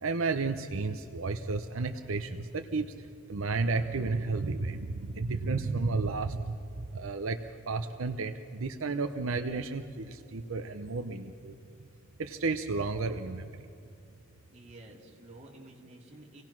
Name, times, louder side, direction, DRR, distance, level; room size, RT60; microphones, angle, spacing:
voice 1, 0.0-6.6 6.9-11.6 12.2-13.7, right 3 dB, 75° right, 7 dB, 0.7 m, -32 dB
voice 2, 14.5-16.4, right 2 dB, 35° right, -1 dB, 2.6 m, -51 dB
26.5 x 18.0 x 6.0 m, 2.6 s
head